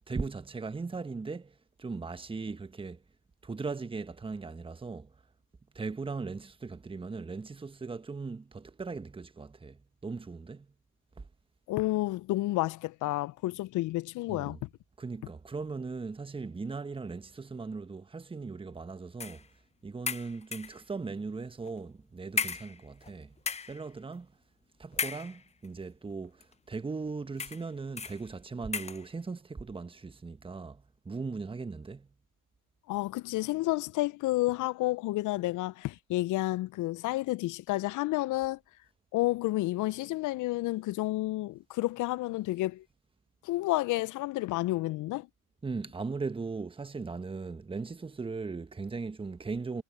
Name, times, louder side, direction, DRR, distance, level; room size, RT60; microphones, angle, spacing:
voice 1, 0.0-3.0 3.4-5.1 5.7-10.7 11.2-11.3 14.3-14.6 15.0-19.5 19.8-23.3 23.7-24.3 24.8-32.1 45.6-49.8, right 4 dB, 10° right, 1.5 m, -38 dB
voice 2, 11.7-14.7 32.9-38.6 39.1-42.8 43.4-45.3, left 18 dB, 40° left, 1.1 m, -30 dB
sound 1, 19.2-19.5 20.1-20.8 21.6-21.8 22.4-23.1 23.4-23.8 24.9-25.7 26.4-26.5 27.4-27.7 28.0-28.2 28.7-29.1, left 5 dB, 15° left, 1.0 m, -35 dB
hypercardioid pair, 80°, 45 cm